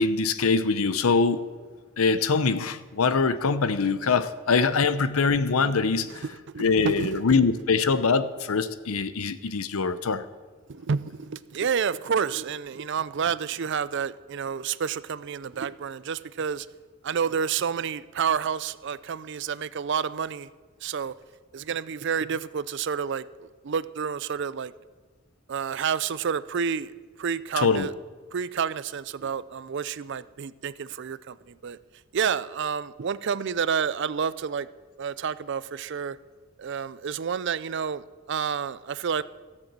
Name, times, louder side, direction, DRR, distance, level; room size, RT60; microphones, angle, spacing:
voice 1, 0.0-1.7 2.0-6.3 6.6-10.2 27.6-27.9, left 4 dB, 80° left, 13 dB, 0.7 m, -23 dB
voice 2, 6.5-7.1 10.7-16.7 17.0-20.5 20.8-21.1 21.5-24.7 25.5-26.9 27.2-27.9 28.3-31.8 32.1-34.7 35.0-36.2 36.6-39.2, right 6 dB, 55° right, 17 dB, 0.4 m, -29 dB
14.0 x 7.5 x 7.5 m, 1.4 s
head